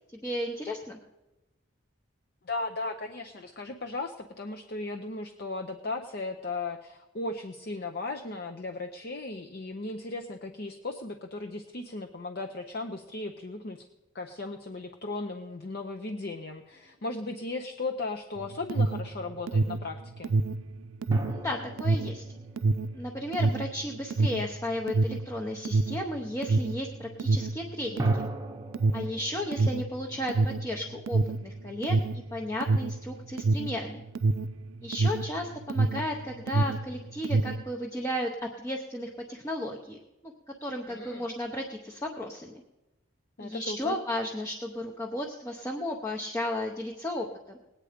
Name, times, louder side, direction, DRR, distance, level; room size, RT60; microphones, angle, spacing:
voice 1, 0.1-1.0 21.3-22.2 22.9-28.2 28.9-34.0 34.8-40.0 40.2-40.3 40.6-42.6 43.4-47.6, left 1 dB, 15° left, -1 dB, 0.7 m, -34 dB
voice 2, 2.4-13.9 14.1-20.3 40.9-41.3 43.4-44.0, left 2 dB, 50° left, 4 dB, 0.6 m, -36 dB
sound 1, 16.7-17.4 21.1-23.9 28.0-31.2, right 1 dB, 15° right, 0.8 m, -40 dB
Alarm, 18.4-36.1 36.4-37.7, right 3 dB, 80° right, 0.4 m, -27 dB
19.0 x 8.9 x 5.0 m, 1.0 s
head